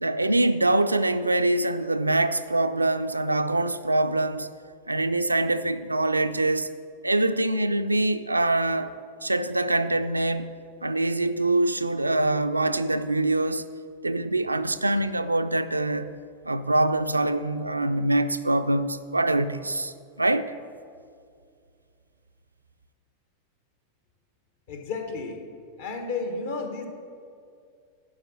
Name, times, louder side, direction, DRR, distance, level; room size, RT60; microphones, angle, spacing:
voice 1, 0.0-4.5 4.9-6.7 7.0-8.9 9.2-13.7 14.0-16.1 16.4-20.5, right 2 dB, 80° right, 0.3 m, -24 dB
voice 2, 24.7-25.5 25.8-26.9, left 4 dB, 60° left, 1.2 m, -32 dB
11.0 x 5.0 x 6.3 m
figure-of-eight pair, 90°, 0 cm